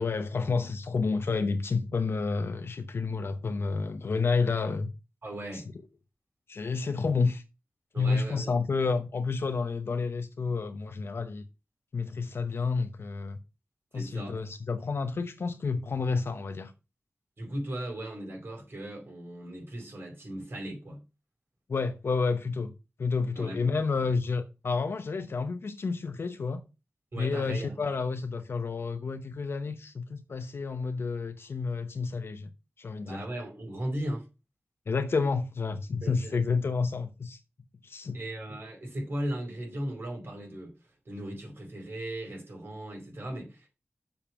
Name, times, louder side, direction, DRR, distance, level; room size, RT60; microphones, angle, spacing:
voice 1, 0.0-4.9 5.5-5.6 6.5-7.4 8.0-11.4 11.9-13.4 13.9-16.7 21.7-22.7 23.0-26.6 27.2-32.5 32.8-33.2 34.9-37.4 37.8-38.2, left 4 dB, 80° left, 0.9 m, -30 dB
voice 2, 5.2-5.6 7.9-8.5 13.9-14.4 17.4-21.0 23.3-23.8 27.1-27.8 33.0-34.3 36.0-36.4 38.1-40.7 41.0-43.7, right 1 dB, 70° right, 4.8 m, -37 dB
7.2 x 5.4 x 5.8 m
wide cardioid pair, 65°, 4 cm